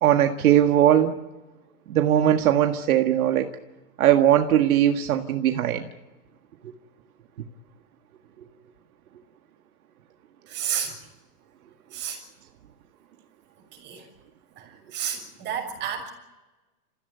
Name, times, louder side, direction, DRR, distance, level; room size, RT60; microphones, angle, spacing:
voice 1, 0.0-1.2 1.9-3.5 4.0-5.9, right 11 dB, 70° right, 5 dB, 1.8 m, -19 dB
voice 2, 10.5-11.0 11.9-12.2 13.7-14.1 14.6-16.1, right 8 dB, 25° right, 2 dB, 6.5 m, -31 dB
27.0 x 16.0 x 9.6 m, 1.2 s
hypercardioid pair, 155°, 45 cm